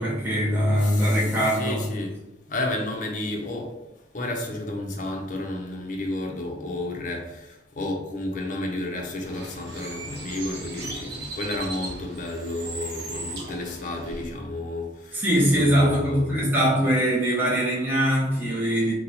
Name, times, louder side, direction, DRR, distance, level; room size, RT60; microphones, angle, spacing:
voice 1, 0.0-1.8 15.1-18.9, equal, 10° right, -7 dB, 0.8 m, -22 dB
voice 2, 0.8-2.1 2.5-3.7 4.1-7.4 7.8-14.9 15.5-16.4, left 2 dB, 45° left, 2 dB, 0.5 m, -31 dB
Bird, 9.2-14.2, right 2 dB, 60° right, 0.8 m, -37 dB
2.9 x 2.1 x 4.0 m, 0.95 s
head